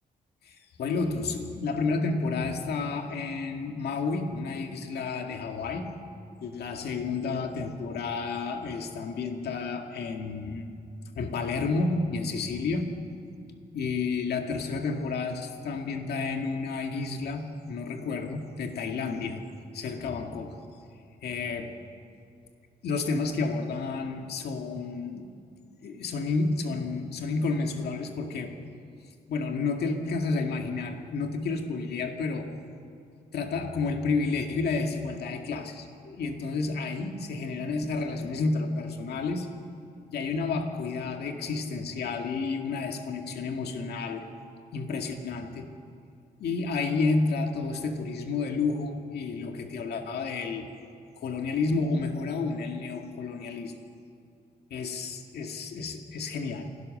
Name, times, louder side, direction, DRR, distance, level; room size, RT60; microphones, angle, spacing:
voice 1, 0.4-5.9 6.4-10.7 11.1-12.9 13.7-19.4 19.7-20.6 21.2-21.7 22.8-25.3 25.8-28.6 29.3-32.5 33.3-39.5 40.1-44.2 44.7-45.7 46.4-50.7 51.2-53.7 54.7-56.7, left 4 dB, 70° left, 4 dB, 2.1 m, -30 dB
27.5 x 17.0 x 6.6 m, 2.5 s
wide cardioid pair, 150°, 17 cm